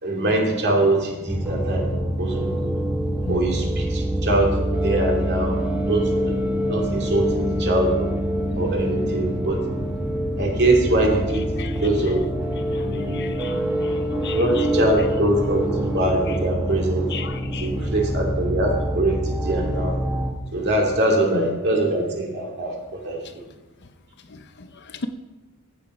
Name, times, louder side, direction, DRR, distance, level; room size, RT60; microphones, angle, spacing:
voice 1, 0.0-1.9 2.2-2.7 3.3-4.5 4.8-5.6 5.9-6.3 6.7-8.1 8.6-9.6 10.4-12.2 12.8-13.3 14.3-17.1 17.6-20.0 20.5-23.2, right 1 dB, 50° right, 0 dB, 2.4 m, -23 dB
sound 1, 1.3-20.3, equal, 10° right, 1.3 m, -25 dB
voice 2, 13.1-13.6 14.2-14.6 17.1-17.7 21.3-21.5 24.6-24.7, left 5 dB, 50° left, 9 dB, 0.7 m, -34 dB
14.5 x 7.0 x 4.8 m, 1.1 s
head